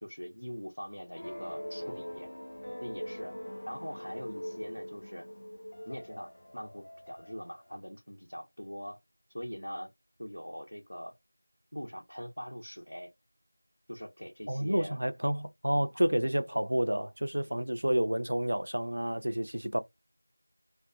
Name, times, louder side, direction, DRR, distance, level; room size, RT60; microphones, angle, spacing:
voice 1, 0.0-2.3 2.8-3.3 3.7-5.3 5.8-9.0 9.3-9.9 10.2-11.1 11.7-13.1 13.9-15.0 15.9-16.0 16.5-16.6 17.5-17.6, equal, 75° left, 0.8 m, -42 dB
sound 1, 1.2-7.8, equal, 35° left, 0.4 m, -42 dB
voice 2, 14.5-19.8, equal, 45° right, 0.4 m, -29 dB
2.5 x 2.1 x 2.4 m
figure-of-eight pair, 180°, 0 cm